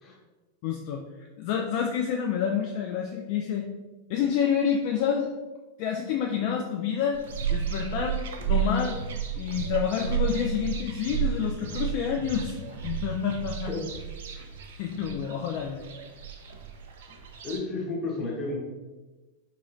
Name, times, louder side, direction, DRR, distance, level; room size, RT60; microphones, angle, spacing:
voice 1, 0.6-1.0 1.4-3.7 4.1-5.3 5.8-7.2 7.5-8.2 8.5-9.0 9.4-13.7 14.3-14.4 14.8-15.8, left 7 dB, 50° left, 2 dB, 0.3 m, -28 dB
sound 1, 7.1-17.6, right 8 dB, 65° right, 0.4 m, -32 dB
voice 2, 17.4-18.6, left 3 dB, 25° left, -3 dB, 1.2 m, -32 dB
3.8 x 2.8 x 2.6 m, 1.2 s
figure-of-eight pair, 90°, 0 cm